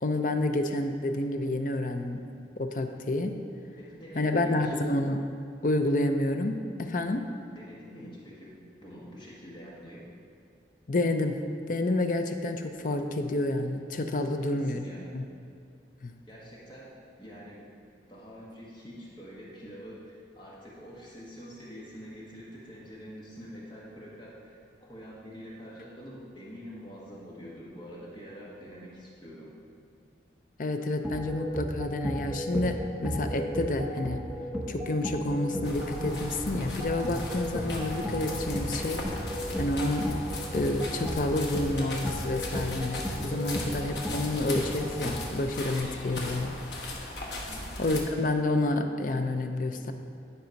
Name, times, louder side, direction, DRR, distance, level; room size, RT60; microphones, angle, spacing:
voice 1, 0.0-2.2 2.6-3.4 4.1-5.3 5.6-7.3 10.9-14.8 15.1-15.2 16.0-16.1 30.6-34.3 34.7-39.0 39.6-40.1 40.5-47.1 47.8-49.9, left 2 dB, 50° left, 6 dB, 0.5 m, -29 dB
voice 2, 3.8-4.7 7.5-10.0 14.3-15.1 16.3-17.7 18.1-29.5 47.3-47.7, equal, 25° left, -6 dB, 1.3 m, -46 dB
sound 1, 31.0-45.2, equal, 5° right, 1.1 m, -35 dB
sound 2, 35.6-48.0, left 2 dB, 75° left, 1.2 m, -38 dB
10.5 x 4.2 x 5.2 m, 2.3 s
head